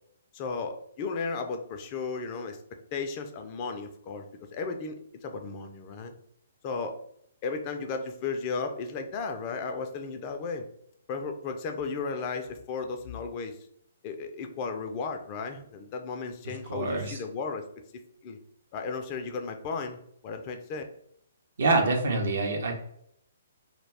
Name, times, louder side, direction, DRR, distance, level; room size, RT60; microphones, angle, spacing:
voice 1, 0.3-2.6 2.9-4.3 4.5-6.1 6.6-7.0 7.4-10.7 11.1-13.6 14.0-17.6 18.2-18.4 18.7-20.8, left 4 dB, 35° left, 5 dB, 0.4 m, -34 dB
voice 2, 16.7-17.2 21.6-22.7, right 3 dB, 60° right, 2 dB, 0.6 m, -25 dB
2.3 x 2.1 x 3.3 m, 0.71 s
figure-of-eight pair, 125°, 0 cm